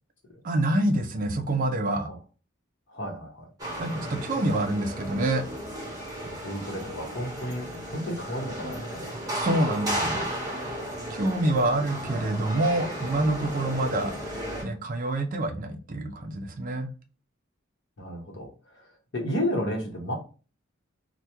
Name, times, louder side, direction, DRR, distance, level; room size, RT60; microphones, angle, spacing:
voice 1, 0.4-2.1 3.8-5.5 9.3-10.3 11.1-14.1 14.6-16.9, right 1 dB, 40° right, 7 dB, 0.4 m, -26 dB
voice 2, 2.9-3.5 6.2-9.2 18.0-18.5 19.1-20.1, equal, 60° left, 1 dB, 0.9 m, -32 dB
sound 1, 3.6-14.6, equal, 20° right, 1.2 m, -34 dB
2.9 x 2.2 x 3.4 m, 0.35 s
head